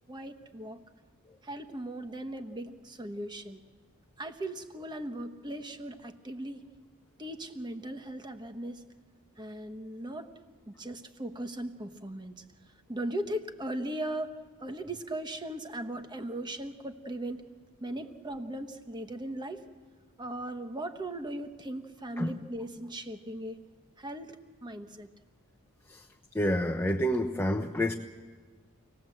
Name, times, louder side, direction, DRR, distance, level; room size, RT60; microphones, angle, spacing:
voice 1, 0.1-0.8 1.4-3.6 4.2-6.6 7.2-8.8 9.4-10.3 10.7-12.4 12.9-17.5 17.8-19.6 20.2-23.6 24.0-25.1, right 1 dB, 20° right, 8 dB, 1.2 m, -38 dB
voice 2, 26.3-27.9, equal, 10° left, 4 dB, 0.8 m, -28 dB
26.5 x 18.5 x 7.8 m, 1.5 s
head